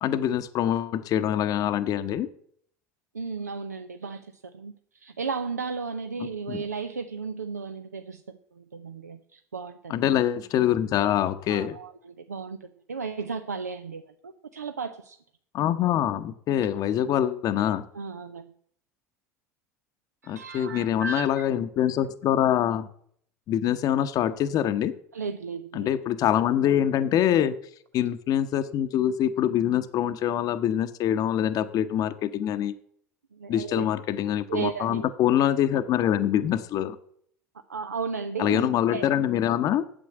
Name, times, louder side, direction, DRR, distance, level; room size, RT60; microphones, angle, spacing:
voice 1, 0.0-2.3 6.2-6.6 9.9-11.8 15.5-17.8 20.3-22.9 23.5-24.9 25.7-27.5 27.9-32.7 33.5-37.0 38.4-39.8, left 10 dB, 45° left, 10 dB, 0.8 m, -25 dB
voice 2, 3.1-9.9 11.5-12.6 12.9-15.2 17.9-18.4 20.2-21.3 25.1-25.9 33.3-33.9 34.5-35.1 37.7-39.1, right 5 dB, 90° right, 8 dB, 0.6 m, -34 dB
8.9 x 7.8 x 8.8 m, 0.66 s
hypercardioid pair, 75°, 9 cm